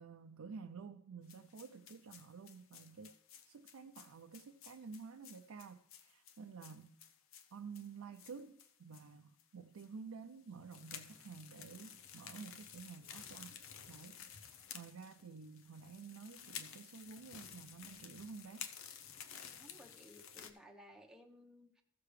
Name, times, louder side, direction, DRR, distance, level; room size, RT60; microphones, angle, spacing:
voice 1, 0.0-3.1 3.4-7.0 7.5-13.6 13.9-18.7, right 5 dB, 90° right, 0.5 m, -51 dB
sound 1, 1.3-9.1 9.4-9.5 9.8-9.9 10.5-20.5, left 8 dB, 70° left, 0.7 m, -53 dB
voice 2, 19.5-21.8, equal, 5° right, 1.0 m, -59 dB
15.5 x 6.6 x 3.2 m
head